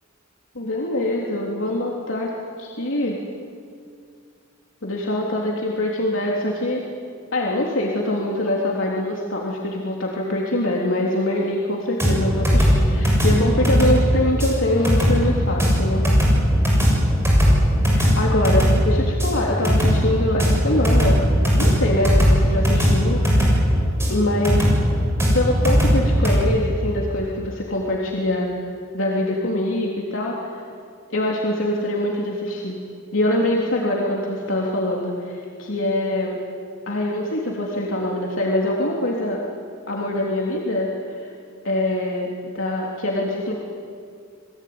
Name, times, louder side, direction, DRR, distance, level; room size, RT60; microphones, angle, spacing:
voice 1, 0.6-2.3 2.6-3.2 4.8-6.8 7.3-16.1 17.9-21.2 21.6-23.6 24.1-24.7 25.3-28.5 28.9-30.6 31.1-32.8 33.1-36.4 36.9-39.4 39.9-41.3 41.6-43.5, left 1 dB, 70° left, -3 dB, 3.4 m, -24 dB
sound 1, 12.0-26.4, equal, 10° right, 7.1 m, -18 dB
28.5 x 21.5 x 9.7 m, 2.3 s
head